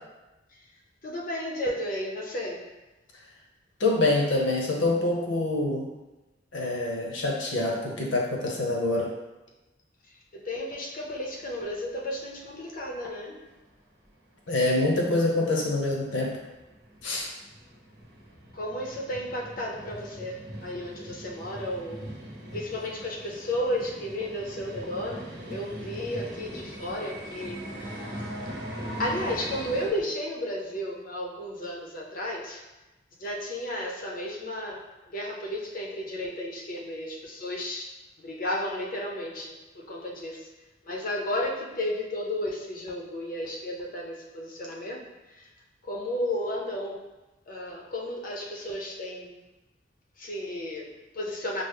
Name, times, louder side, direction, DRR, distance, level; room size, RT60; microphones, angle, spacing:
voice 1, 1.0-2.7 10.3-13.5 18.5-22.0 22.5-28.1 28.9-32.6 33.2-37.9 38.2-40.5 40.8-45.1 45.4-45.5 45.8-47.0 47.5-49.4 50.2-51.6, left 1 dB, 50° left, -1 dB, 0.6 m, -33 dB
voice 2, 3.8-5.9 6.5-9.1 14.5-16.4 17.0-17.3, left 2 dB, 80° left, -1 dB, 0.8 m, -25 dB
sound 1, 11.0-13.1 13.4-13.5 14.1-14.2 14.4-14.5 14.8-29.9, equal, 60° right, 0.8 m, -41 dB
5.3 x 2.0 x 3.4 m, 1.1 s
head